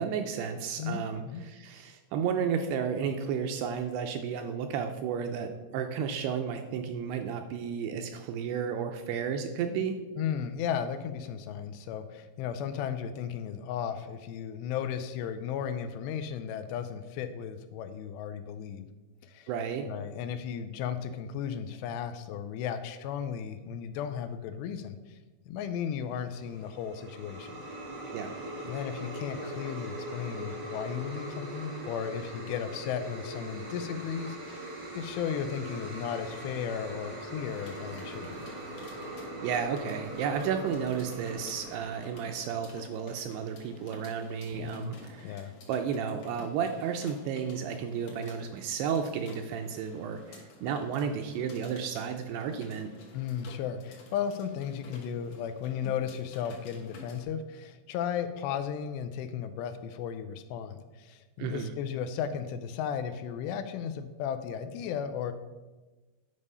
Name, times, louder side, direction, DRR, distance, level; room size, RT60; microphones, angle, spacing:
voice 1, 0.0-10.0 19.5-19.9 28.1-28.3 39.0-52.9 61.4-61.7, right 7 dB, 80° right, 5 dB, 2.4 m, -33 dB
voice 2, 0.8-1.4 10.2-18.9 19.2-19.5 19.9-25.2 25.5-27.6 28.6-34.7 34.9-38.4 44.5-45.0 45.2-45.5 53.1-65.3, left 8 dB, 80° left, 9 dB, 2.6 m, -35 dB
sound 1, 26.2-42.7, right 1 dB, 45° right, 1.3 m, -41 dB
sound 2, 37.5-57.2, left 2 dB, 60° left, 2.0 m, -52 dB
9.6 x 5.3 x 5.5 m, 1.2 s
omnidirectional pair, 5.1 m